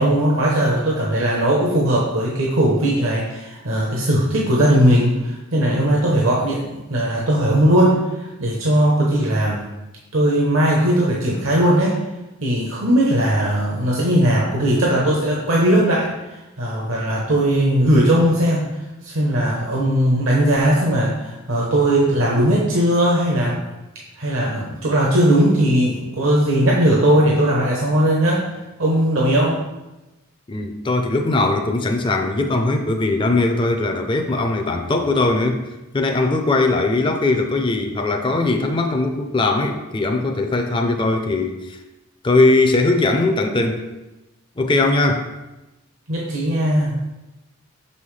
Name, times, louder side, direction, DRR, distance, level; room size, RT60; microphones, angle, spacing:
voice 1, 0.0-9.6 10.1-12.0 12.4-18.6 19.0-23.5 24.2-28.4 28.8-29.6 46.1-46.9, right 1 dB, 70° right, -3 dB, 0.9 m, -18 dB
voice 2, 30.5-35.6 35.9-41.8 42.2-43.8 44.6-45.3, left 2 dB, 25° left, 4 dB, 0.4 m, -20 dB
6.0 x 5.5 x 3.2 m, 1.0 s
head